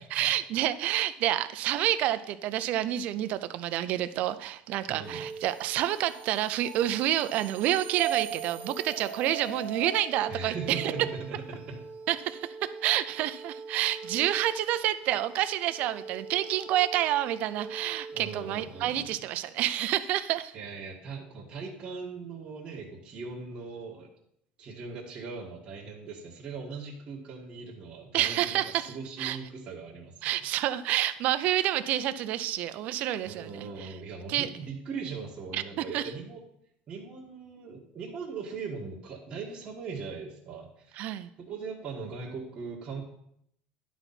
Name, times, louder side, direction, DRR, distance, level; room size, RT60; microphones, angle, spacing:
voice 1, 0.0-10.9 12.1-20.5 28.1-28.9 29.2-29.4 30.2-33.9 34.3-34.5 35.5-35.6 35.9-36.0 40.9-41.3, right 13 dB, 50° right, 12 dB, 0.5 m, -28 dB
voice 2, 4.9-5.2 10.3-11.8 18.1-19.1 20.5-24.1 24.6-28.6 28.9-30.4 33.2-36.4 36.9-41.1 41.4-43.0, right 4 dB, 30° right, -6 dB, 1.6 m, -40 dB
sound 1, 5.0-18.9, right 6 dB, 70° right, 1.1 m, -41 dB
11.0 x 4.0 x 5.8 m, 0.73 s
cardioid pair, 160°, 3 cm